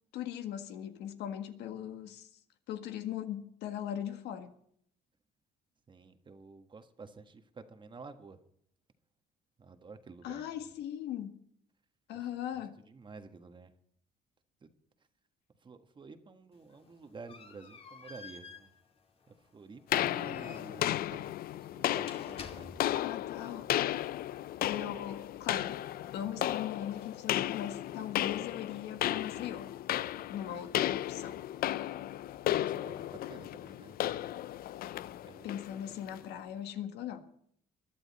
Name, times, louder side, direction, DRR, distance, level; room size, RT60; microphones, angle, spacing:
voice 1, 0.1-2.3 2.7-4.5 10.2-11.4 12.1-12.8 23.0-23.6 24.7-25.8 26.1-29.7 30.3-31.4 35.4-37.2, left 10 dB, 80° left, 1.8 m, -39 dB
voice 2, 5.9-8.4 9.6-10.4 12.1-13.7 14.6-14.7 15.6-18.7 19.3-21.3 21.6-22.8 32.5-34.0 35.2-35.6, right 4 dB, 30° right, 1.6 m, -51 dB
sound 1, 16.5-23.2, left 4 dB, 35° left, 2.1 m, -52 dB
sound 2, 19.9-36.3, left 13 dB, 60° left, 0.5 m, -34 dB
22.0 x 11.5 x 4.2 m
cardioid pair, 110°, 17 cm